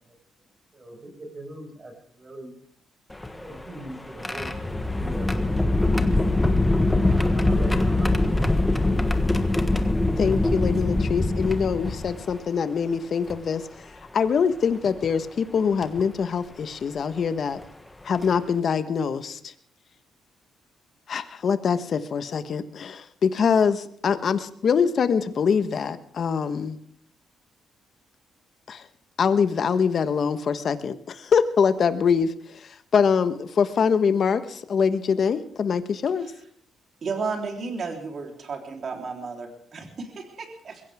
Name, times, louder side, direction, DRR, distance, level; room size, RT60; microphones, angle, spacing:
voice 1, 0.7-2.5 3.4-4.5 4.8-5.4 6.9-8.2, right 1 dB, 30° right, 2 dB, 6.2 m, -41 dB
sound 1, 3.1-12.4 13.3-13.4 14.8-15.1 15.8-16.0 17.6-17.7 18.1-18.4, left 2 dB, 10° left, 1.4 m, -23 dB
voice 2, 10.2-13.9 14.1-17.6 18.0-19.4 21.1-26.8 28.7-28.8 29.2-36.3, left 6 dB, 55° left, 11 dB, 1.3 m, -24 dB
voice 3, 37.0-40.8, right 4 dB, 50° right, 2 dB, 3.7 m, -33 dB
22.0 x 16.0 x 3.6 m, 0.63 s
cardioid pair, 90°, 0 cm